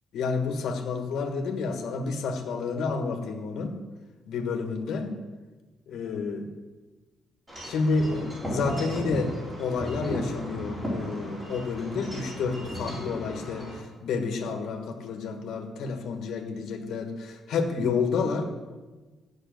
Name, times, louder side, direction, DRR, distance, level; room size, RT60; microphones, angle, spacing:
voice 1, 0.1-3.8 4.3-5.2 5.9-6.5 7.6-9.3 9.6-18.6, left 4 dB, 65° left, 4 dB, 1.5 m, -30 dB
Wind chime / Wind, 7.5-13.8, equal, 15° right, 4.0 m, -35 dB
13.0 x 6.2 x 9.2 m, 1.3 s
cardioid pair, 180°, 0 cm